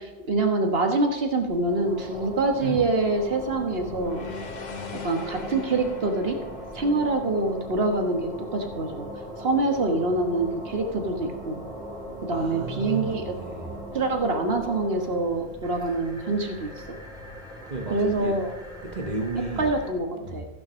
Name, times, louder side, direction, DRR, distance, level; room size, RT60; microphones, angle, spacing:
voice 1, 0.0-4.3 5.0-6.4 6.7-9.1 9.4-11.6 12.2-13.3 13.9-16.7 17.9-18.5 19.6-20.5, right 2 dB, 65° right, 4 dB, 1.6 m, -25 dB
sound 1, 1.5-19.9, equal, 5° right, 2.6 m, -39 dB
sound 2, 3.8-8.0, left 5 dB, 45° left, 1.0 m, -41 dB
voice 2, 12.3-13.7 17.6-18.4 18.8-19.7 20.1-20.5, right 3 dB, 45° right, 3 dB, 1.3 m, -33 dB
14.5 x 6.3 x 6.2 m, 1.1 s
omnidirectional pair, 1.1 m